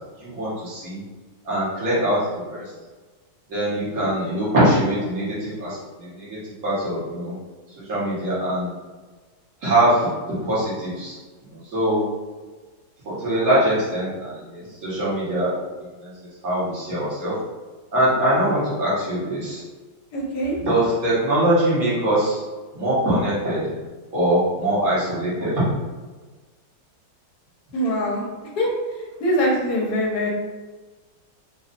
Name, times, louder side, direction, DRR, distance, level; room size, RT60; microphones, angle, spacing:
voice 1, 0.2-1.0 1.4-2.6 3.5-7.3 7.9-8.7 9.6-10.1 10.4-11.2 11.5-12.0 13.0-15.5 16.0-16.1 16.4-17.3 17.9-19.6 20.6-22.4 22.7-23.7 24.1-25.6, right 1 dB, 50° right, -10 dB, 1.9 m, -22 dB
voice 2, 20.1-20.6 27.7-28.2 28.6-28.7 29.2-30.3, equal, 65° left, -2 dB, 1.3 m, -22 dB
3.9 x 2.9 x 2.5 m, 1.3 s
omnidirectional pair, 2.0 m